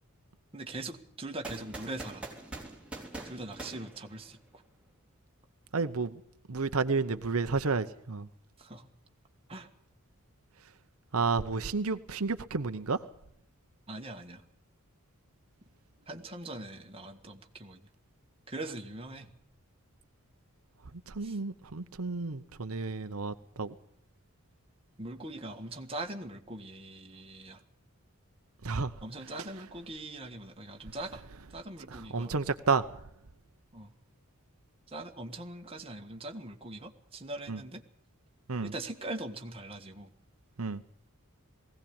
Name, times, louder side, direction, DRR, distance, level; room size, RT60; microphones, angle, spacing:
voice 1, 0.5-2.3 3.2-4.6 8.6-8.9 9.5-9.7 13.9-14.4 16.1-17.8 18.5-19.3 21.2-21.4 25.0-27.6 29.0-31.2 31.5-32.3 33.7-33.9 34.9-37.8 38.6-40.1, right 2 dB, 25° right, 3 dB, 1.7 m, -41 dB
sound 1, 1.4-4.6, right 2 dB, 5° right, 3.5 m, -44 dB
voice 2, 5.7-6.1 6.5-8.3 11.1-13.0 21.2-23.7 28.6-28.9 32.1-32.8 37.5-37.6 38.5-38.7 40.6-40.8, right 4 dB, 75° right, 10 dB, 0.9 m, -31 dB
20.0 x 16.5 x 8.8 m, 0.69 s
head